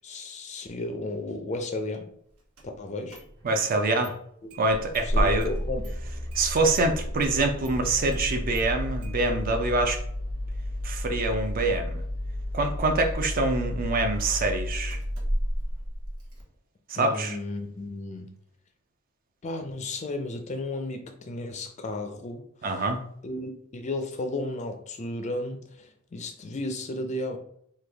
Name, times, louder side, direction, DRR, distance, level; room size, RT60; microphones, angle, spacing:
voice 1, 0.0-2.1 2.8-3.2 5.0-5.8 16.9-18.3 19.4-22.8 23.2-27.4, left 2 dB, 30° left, 0.4 m, -34 dB
Engine starting, 2.6-2.7 3.1-3.7 4.0-4.1 4.5-16.4, equal, 85° right, 0.9 m, -31 dB
voice 2, 3.4-4.2 4.6-5.5 6.3-10.0 10.8-12.0 12.5-15.0 16.9-17.4 22.6-23.0, right 2 dB, 40° right, 0.4 m, -25 dB
3.2 x 2.3 x 3.3 m
head